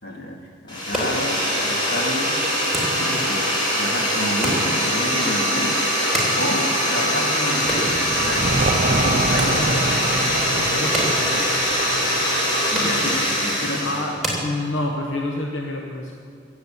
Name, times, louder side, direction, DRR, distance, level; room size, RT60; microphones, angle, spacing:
voice 1, 0.0-2.3 3.0-5.8 6.3-8.5 8.9-10.4 12.7-13.9, equal, 55° left, 0 dB, 2.3 m, -30 dB
sound 1, 0.7-14.1, equal, 25° left, 3.7 m, -22 dB
sound 2, 0.7-15.2, right 1 dB, ahead, 3.2 m, -33 dB
sound 3, 7.6-13.4, right 2 dB, 40° right, 0.6 m, -27 dB
voice 2, 10.5-11.5 13.8-16.1, left 2 dB, 75° left, 1 dB, 1.2 m, -28 dB
16.0 x 8.0 x 8.3 m, 2.4 s
head